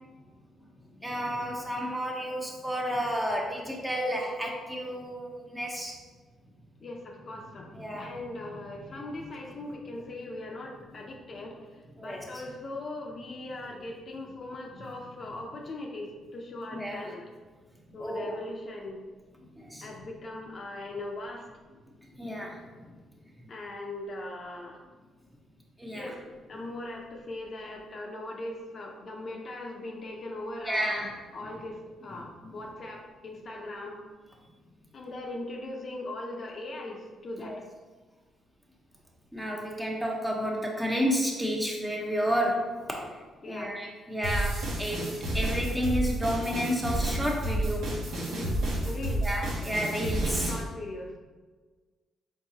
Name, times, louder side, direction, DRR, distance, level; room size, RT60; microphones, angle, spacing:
voice 1, 1.0-6.0 7.7-8.1 12.0-12.2 16.7-17.1 18.0-18.4 19.5-19.9 22.2-22.8 25.8-26.1 30.7-31.1 32.4-32.5 37.4-37.6 39.3-48.0 49.2-50.5, equal, 10° right, -1 dB, 0.9 m, -31 dB
voice 2, 6.8-7.7 8.0-17.3 17.9-19.1 19.8-21.5 23.5-24.8 25.9-34.0 34.9-37.6 43.4-43.7 48.3-49.3 50.4-51.2, left 2 dB, 45° left, 0 dB, 0.7 m, -40 dB
sound 1, 44.2-50.6, right 1 dB, 80° right, 1.2 m, -30 dB
4.6 x 3.7 x 2.8 m, 1.3 s
cardioid pair, 90°, 0 cm